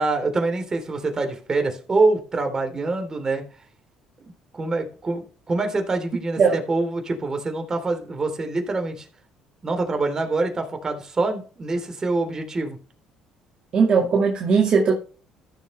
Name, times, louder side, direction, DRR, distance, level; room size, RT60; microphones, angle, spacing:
voice 1, 0.0-3.4 4.2-9.0 9.6-12.8, right 3 dB, 30° right, 3.4 m, -25 dB
voice 2, 13.7-14.9, right 5 dB, 50° right, 2.0 m, -18 dB
14.5 x 6.9 x 3.3 m
supercardioid pair, 85°, 2 cm